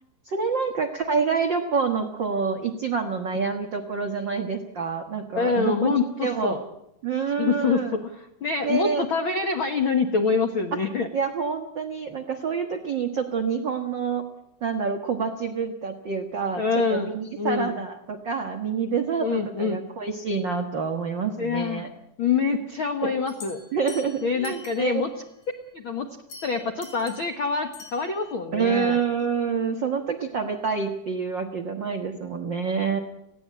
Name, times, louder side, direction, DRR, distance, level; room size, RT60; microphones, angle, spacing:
voice 1, 0.2-6.6 7.0-7.9 8.6-9.0 11.1-14.2 14.6-16.6 16.9-21.9 23.0-23.1 23.7-25.0 28.5-33.0, right 5 dB, 85° right, 5 dB, 1.0 m, -27 dB
voice 2, 5.3-6.6 7.4-11.1 16.6-17.8 19.2-19.8 21.4-21.8 22.2-23.6 24.2-25.1 25.7-26.2 26.4-29.0, left 5 dB, 75° left, 6 dB, 1.1 m, -26 dB
sound 1, 23.3-25.1 26.3-28.4, left 4 dB, 55° left, 5.5 m, -45 dB
19.5 x 15.5 x 8.6 m, 0.81 s
omnidirectional pair, 4.3 m